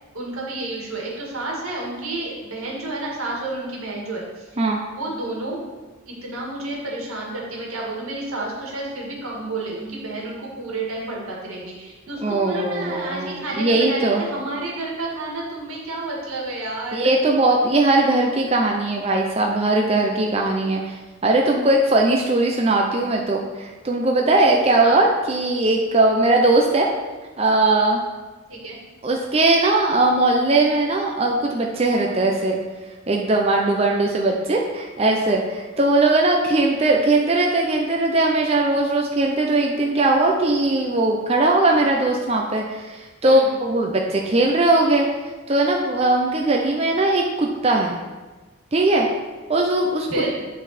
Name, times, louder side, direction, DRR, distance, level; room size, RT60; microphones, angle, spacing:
voice 1, 0.1-4.5 4.8-5.6 6.1-17.1 24.8-25.0 28.5-28.8 43.2-43.5 50.1-50.3, right 2 dB, 85° right, -3 dB, 1.9 m, -30 dB
voice 2, 12.2-14.2 16.9-26.9 27.4-28.0 29.0-32.6 33.1-45.1 45.5-48.0 48.7-49.1 49.5-50.2, right 2 dB, 30° right, 0 dB, 0.5 m, -19 dB
10.0 x 4.0 x 4.2 m, 1.3 s
head